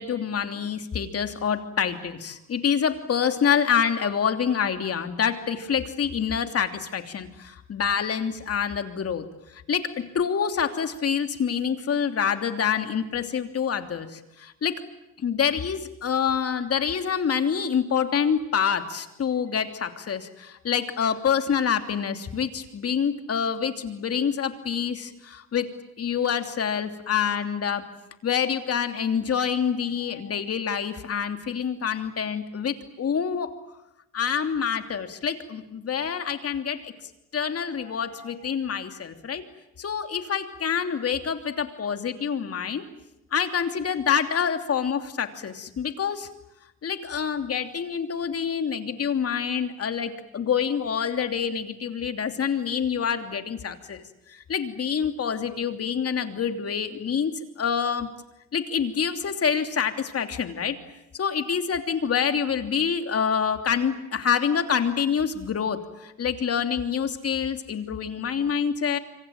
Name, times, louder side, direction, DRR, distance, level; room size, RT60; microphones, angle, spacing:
voice 1, 0.0-14.8 15.2-25.7 26.0-27.9 28.2-33.5 34.1-36.9 37.3-39.4 39.8-42.9 43.3-46.3 46.8-58.1 58.5-60.8 61.1-69.0, left 7 dB, 50° left, 7 dB, 3.0 m, -27 dB
26.5 x 25.5 x 8.9 m, 0.88 s
cardioid pair, 90°, 30 cm